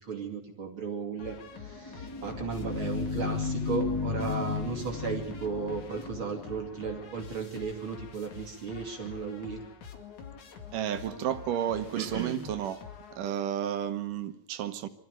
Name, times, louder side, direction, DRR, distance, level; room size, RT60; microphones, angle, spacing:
voice 1, 0.0-9.6 12.0-12.4, right 5 dB, 40° right, 3.1 m, -35 dB
sound 1, 1.2-13.6, left 6 dB, 60° left, 3.6 m, -47 dB
sound 2, 1.5-7.1, left 4 dB, 5° left, 2.8 m, -34 dB
voice 2, 10.7-12.8 13.1-14.9, right 10 dB, 75° right, 2.7 m, -32 dB
25.0 x 14.5 x 9.2 m
omnidirectional pair, 3.9 m